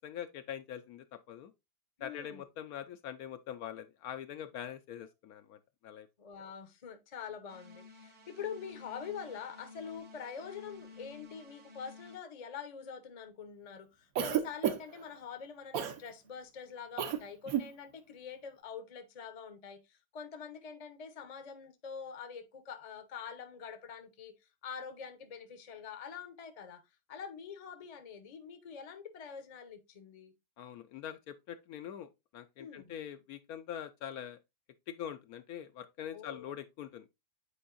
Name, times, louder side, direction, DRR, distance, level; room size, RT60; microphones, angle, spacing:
voice 1, 0.0-1.5 2.0-5.6 5.8-6.1 30.6-34.4 34.9-37.0, left 9 dB, 70° left, 1.0 m, -43 dB
voice 2, 2.0-2.4 6.2-24.3 24.6-26.8 27.1-30.3 32.6-32.9 36.1-36.5, left 6 dB, 35° left, 0.6 m, -45 dB
sound 1, 7.5-12.2, left 4 dB, 90° right, 2.1 m, -53 dB
Cough, 14.2-15.0 15.7-16.0 17.0-17.2 17.5-17.7, right 9 dB, 65° right, 1.1 m, -31 dB
8.6 x 4.5 x 2.5 m
omnidirectional pair, 1.7 m